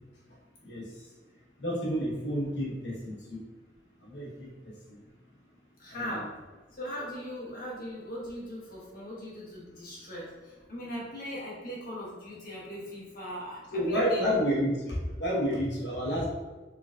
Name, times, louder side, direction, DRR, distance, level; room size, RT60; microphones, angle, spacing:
voice 1, 1.6-3.4 4.1-4.5 6.0-6.3 13.7-16.3, equal, 75° left, -4 dB, 1.2 m, -30 dB
voice 2, 5.8-6.4 6.7-14.3, equal, 50° left, -6 dB, 1.2 m, -39 dB
3.8 x 3.2 x 2.4 m, 1.3 s
head